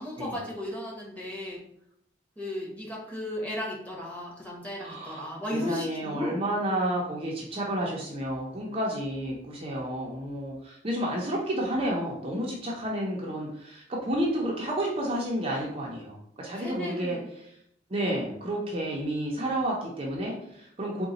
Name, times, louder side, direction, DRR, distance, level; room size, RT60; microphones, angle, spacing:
voice 1, 0.0-1.6 2.4-6.4 11.1-11.3 16.6-17.2, left 1 dB, 10° left, -4 dB, 1.1 m, -35 dB
voice 2, 4.8-17.6 17.9-21.1, right 1 dB, 30° right, -3 dB, 0.6 m, -31 dB
3.8 x 2.2 x 3.9 m, 0.73 s
head